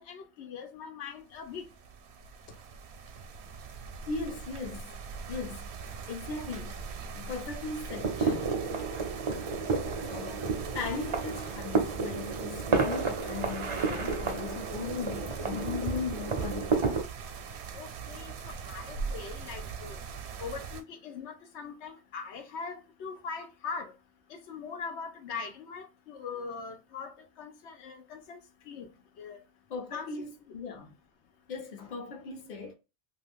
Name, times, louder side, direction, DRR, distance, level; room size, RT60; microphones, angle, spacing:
voice 1, 0.0-1.7 17.7-20.0 20.4-23.9 24.3-28.4 28.6-28.9 29.2-29.4 29.9-30.1, left 5 dB, 90° left, 0.9 m, -41 dB
sound 1, 1.3-20.8, right 5 dB, 75° right, 0.8 m, -41 dB
voice 2, 4.1-4.9 5.3-5.7 6.1-6.7 7.1-8.4 10.1-10.5 10.7-16.8 29.7-30.9 31.5-32.7, left 4 dB, 50° left, 0.8 m, -38 dB
sound 2, 7.9-17.0, right 4 dB, 40° right, 0.4 m, -31 dB
2.6 x 2.4 x 3.4 m
omnidirectional pair, 1.1 m